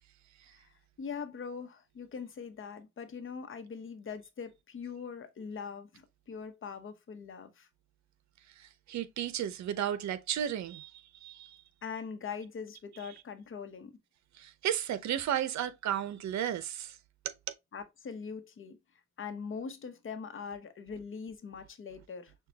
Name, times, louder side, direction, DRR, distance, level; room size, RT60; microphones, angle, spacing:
voice 1, 0.5-7.7 11.8-14.0 17.7-18.8 19.2-22.3, left 6 dB, 40° left, 0.9 m, -42 dB
voice 2, 8.6-11.6 14.4-17.0 17.2-17.3, right 10 dB, 65° right, 0.7 m, -34 dB
6.2 x 2.3 x 2.8 m
cardioid pair, 90°, 30 cm